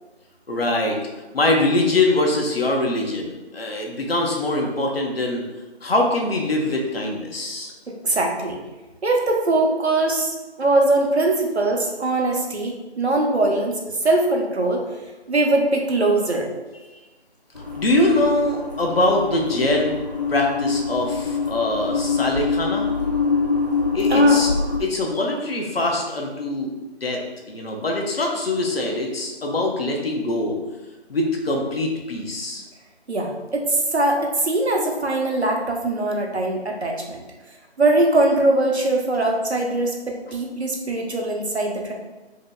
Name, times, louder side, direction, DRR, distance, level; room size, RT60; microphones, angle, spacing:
voice 1, 0.5-1.0 1.3-5.4 5.8-7.7 16.9-17.0 17.8-19.9 20.3-22.9 23.9-24.5 24.8-26.7 27.0-27.2 27.5-30.6 31.1-32.6, left 2 dB, 60° left, 0 dB, 0.9 m, -23 dB
voice 2, 7.9-8.6 9.0-14.9 15.3-16.5 24.1-24.4 33.1-37.2 37.8-41.9, right 2 dB, 70° right, 0 dB, 1.0 m, -21 dB
sound 1, 17.5-24.8, left 5 dB, 40° left, 0.5 m, -24 dB
5.5 x 2.9 x 2.2 m, 1.1 s
figure-of-eight pair, 160°, 33 cm